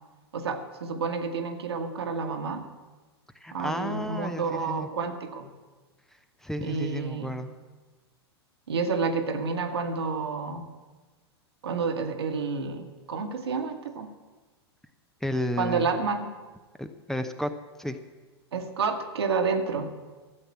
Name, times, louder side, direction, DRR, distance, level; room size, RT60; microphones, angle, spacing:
voice 1, 0.3-2.6 3.5-5.5 6.6-7.4 8.7-10.6 11.6-14.1 15.6-16.3 18.5-19.9, right 4 dB, 70° right, 6 dB, 1.6 m, -29 dB
voice 2, 3.4-4.9 6.4-7.5 15.2-15.9 16.8-17.5 17.8-18.0, equal, 5° left, 8 dB, 0.8 m, -32 dB
13.5 x 8.1 x 8.4 m, 1.3 s
figure-of-eight pair, 95°, 14 cm